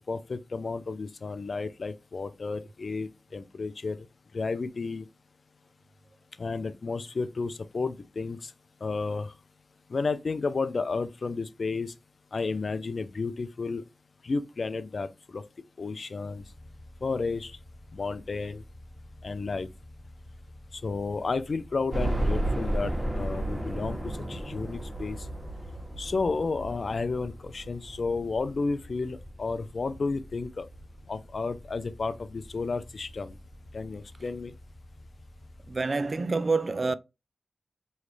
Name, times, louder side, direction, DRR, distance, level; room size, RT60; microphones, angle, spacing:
voice 1, 0.1-4.0 4.3-5.1 6.4-8.5 8.8-9.3 9.9-11.9 12.3-13.8 14.2-15.1 15.3-15.4 15.8-16.4 17.0-17.5 17.9-18.6 19.2-19.7 20.8-25.2 26.0-30.6 31.1-33.3 33.7-34.5, left 4 dB, 65° left, 0.5 m, -32 dB
sound 1, 16.3-35.8, left 1 dB, 5° left, 2.4 m, -50 dB
sound 2, 21.9-30.8 31.3-31.4 31.8-31.9 33.1-33.2 33.4-33.5, right 1 dB, 15° right, 2.1 m, -33 dB
voice 2, 35.7-36.9, right 3 dB, 50° right, 0.3 m, -27 dB
4.7 x 3.2 x 3.2 m
cardioid pair, 45°, 0 cm